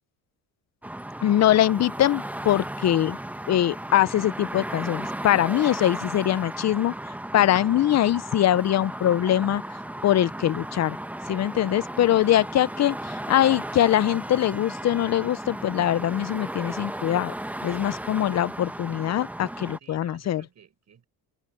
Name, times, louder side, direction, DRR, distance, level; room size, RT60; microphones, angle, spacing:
sound 1, 0.8-19.8, right 1 dB, 5° right, 1.1 m, -35 dB
voice 1, 1.2-3.2 3.5-6.9 7.3-9.6 10.0-11.0 11.3-13.0 13.3-17.3 17.6-20.4, left 12 dB, 45° left, 0.7 m, -22 dB
voice 2, 19.8-21.1, right 7 dB, 45° right, 7.7 m, -54 dB
cardioid pair, 95°, 37 cm